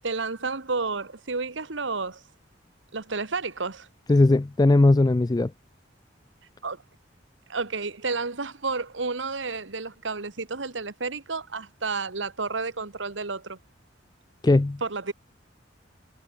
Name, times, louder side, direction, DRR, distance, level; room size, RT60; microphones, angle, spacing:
voice 1, 0.0-2.2 2.9-3.9 6.6-6.8 7.5-13.6 14.8-15.1, right 4 dB, 85° right, 1.6 m, -31 dB
voice 2, 4.1-5.5 14.4-14.8, left 2 dB, 20° left, 0.4 m, -19 dB
head